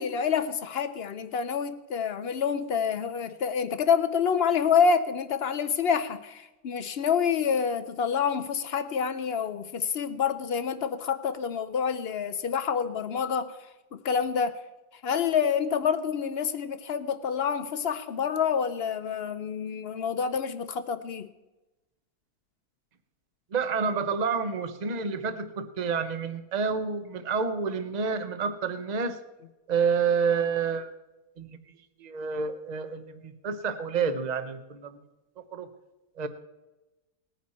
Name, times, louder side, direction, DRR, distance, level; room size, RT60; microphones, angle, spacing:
voice 1, 0.0-13.6 13.9-14.6 15.0-21.3, left 6 dB, 60° left, 10 dB, 0.6 m, -27 dB
voice 2, 23.5-29.2 29.7-30.9 31.4-31.6 32.0-35.0 35.5-35.7 36.2-36.3, right 5 dB, 35° right, 10 dB, 0.7 m, -29 dB
19.0 x 9.6 x 4.2 m, 1.0 s
omnidirectional pair, 1.7 m